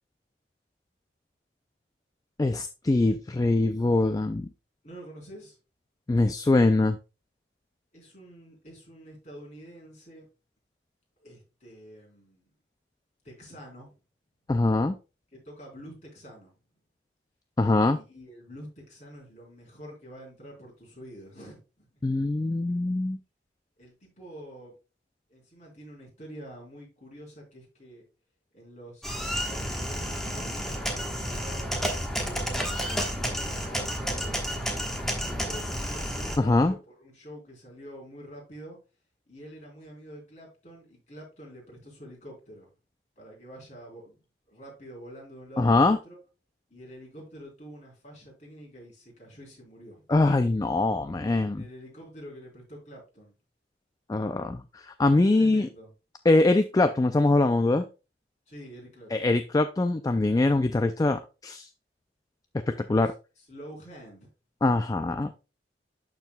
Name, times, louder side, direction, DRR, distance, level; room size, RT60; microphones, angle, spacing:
voice 1, 2.4-4.5 6.1-7.0 14.5-15.0 17.6-18.0 22.0-23.2 36.4-36.7 45.6-46.0 50.1-51.6 54.1-55.7 56.3-57.9 59.1-61.7 62.7-63.1 64.6-65.4, left 2 dB, 20° left, 9 dB, 0.3 m, -23 dB
voice 2, 4.8-5.6 7.9-10.3 11.2-12.5 13.2-14.0 15.3-16.5 17.9-21.9 23.8-24.8 25.3-28.0 28.5-31.7 32.0-34.8 35.2-38.8 39.3-42.7 43.2-44.2 44.5-46.2 46.7-50.0 51.4-53.3 55.3-55.9 58.5-59.3 63.4-64.3, equal, 40° left, -2 dB, 3.9 m, -47 dB
sound 1, 29.0-36.4, equal, ahead, 1.2 m, -31 dB
12.0 x 4.5 x 2.3 m, 0.30 s
head